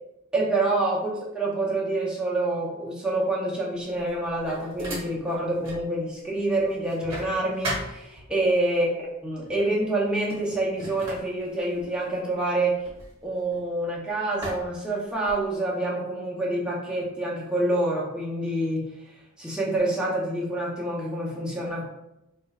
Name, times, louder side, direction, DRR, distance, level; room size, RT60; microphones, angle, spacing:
voice 1, 0.3-1.1 1.3-12.7 13.2-18.9 19.4-21.9, right 2 dB, 5° right, -5 dB, 0.7 m, -27 dB
sound 1, 3.9-5.9 6.3-8.6 9.4-9.7 10.0-13.9 14.4-15.6, right 1 dB, 25° right, 1.1 m, -38 dB
3.8 x 2.3 x 3.1 m, 0.87 s
head